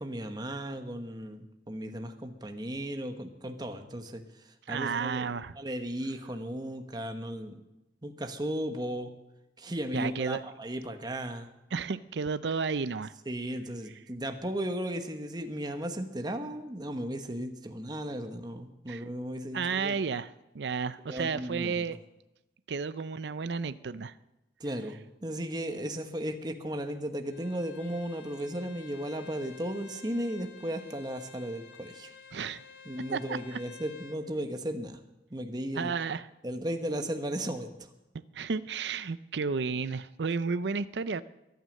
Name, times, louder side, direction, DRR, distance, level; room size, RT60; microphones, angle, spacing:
voice 1, 0.0-4.2 4.7-5.3 5.6-7.6 8.0-9.1 9.6-11.5 13.3-20.0 21.1-21.8 24.6-25.0 25.2-32.1 32.8-35.0 35.3-35.9 36.4-37.7, right 1 dB, 25° right, 6 dB, 1.2 m, -35 dB
voice 2, 4.7-5.6 9.9-10.4 11.7-13.1 18.9-19.1 19.5-22.0 22.7-24.1 32.3-32.6 33.1-33.6 35.7-36.3 38.3-41.2, right 5 dB, 80° right, 14 dB, 0.5 m, -32 dB
Bowed string instrument, 27.3-34.2, left 6 dB, 85° left, 2.5 m, -51 dB
23.0 x 9.4 x 6.5 m, 0.95 s
head